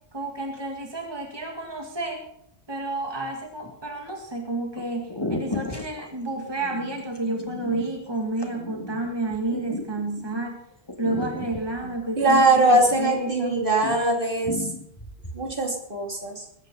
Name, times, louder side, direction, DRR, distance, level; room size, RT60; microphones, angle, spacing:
voice 1, 0.1-2.2 2.7-10.6 11.0-13.6, right 2 dB, 25° right, 2 dB, 2.0 m, -30 dB
sound 1, 3.6-4.1 4.8-4.9 5.1-10.4 10.9-13.3 13.6-14.2 14.4-15.4, left 2 dB, 20° left, 2.0 m, -35 dB
voice 2, 12.2-14.7 15.3-16.4, right 2 dB, 55° right, 1 dB, 3.1 m, -21 dB
21.0 x 9.1 x 5.3 m, 0.75 s
omnidirectional pair, 1.1 m